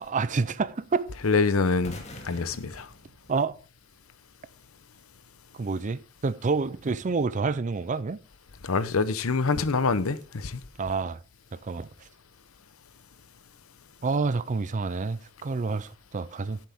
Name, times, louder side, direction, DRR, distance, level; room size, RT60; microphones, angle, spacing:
voice 1, 0.0-1.1 3.3-3.6 5.5-8.2 10.8-11.2 11.5-11.9 14.0-16.6, right 4 dB, 35° right, 0.5 m, -28 dB
voice 2, 1.2-2.9 8.6-10.6, left 4 dB, 85° left, 0.8 m, -25 dB
sound 1, 1.8-3.9, left 1 dB, 35° left, 2.0 m, -46 dB
14.0 x 7.6 x 3.5 m
head